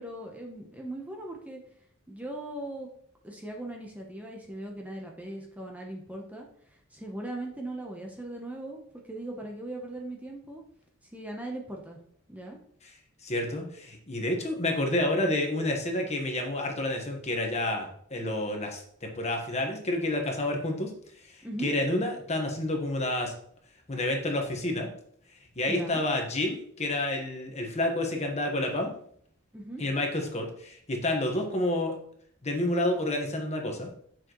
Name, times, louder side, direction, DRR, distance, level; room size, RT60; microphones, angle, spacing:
voice 1, 0.0-1.6 2.1-2.9 3.2-10.6 11.1-12.0 12.3-12.6 14.1-14.2 21.4-21.7 25.7-26.0 29.5-29.8, right 1 dB, 10° right, 0 dB, 0.9 m, -39 dB
voice 2, 13.2-20.9 21.2-21.3 21.6-23.3 23.9-24.9 25.6-28.9 29.8-31.9 32.4-33.9, left 1 dB, 35° left, 2 dB, 1.3 m, -29 dB
7.7 x 6.0 x 3.1 m, 0.63 s
head